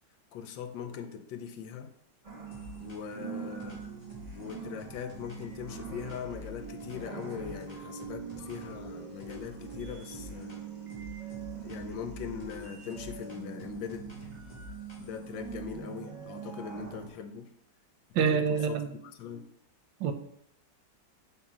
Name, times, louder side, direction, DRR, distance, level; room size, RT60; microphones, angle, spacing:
voice 1, 0.3-1.9 2.8-3.8 4.3-10.6 11.6-14.1 15.0-17.5 18.2-19.4, left 7 dB, 75° left, 1.4 m, -41 dB
sound 1, 2.2-17.1, right 6 dB, 30° right, 1.0 m, -43 dB
sound 2, 2.5-3.2 3.6-8.9 9.2-10.6 10.9-15.3, left 2 dB, 25° left, 1.3 m, -49 dB
voice 2, 18.1-19.0 20.0-20.1, right 6 dB, 80° right, 1.3 m, -26 dB
5.7 x 3.9 x 6.0 m
omnidirectional pair, 2.1 m